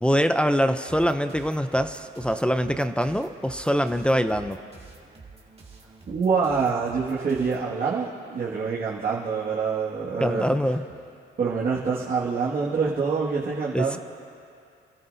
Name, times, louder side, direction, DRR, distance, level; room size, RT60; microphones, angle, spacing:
voice 1, 0.0-4.6 10.2-10.8 13.7-14.0, equal, 5° left, 8 dB, 0.5 m, -24 dB
sound 1, 0.9-7.7, right 4 dB, 30° right, 2.1 m, -48 dB
voice 2, 6.1-10.6 11.4-14.0, right 5 dB, 50° right, -6 dB, 1.9 m, -26 dB
29.5 x 13.5 x 2.7 m, 2.5 s
cardioid pair, 90°, 20 cm